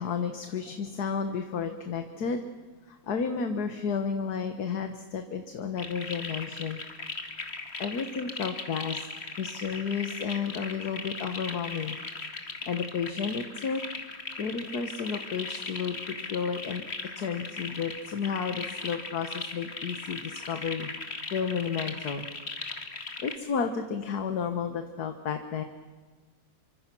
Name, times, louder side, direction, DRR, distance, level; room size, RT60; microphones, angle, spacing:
voice 1, 0.0-2.4 2.9-6.8 7.1-7.5 7.8-9.1 9.4-12.0 12.4-13.8 14.4-16.8 17.2-22.2 23.2-25.6, left 6 dB, 60° left, 7 dB, 1.8 m, -32 dB
sound 1, 5.8-23.4, left 3 dB, 35° left, 2.2 m, -38 dB
27.0 x 24.5 x 6.1 m, 1.4 s
omnidirectional pair, 1.9 m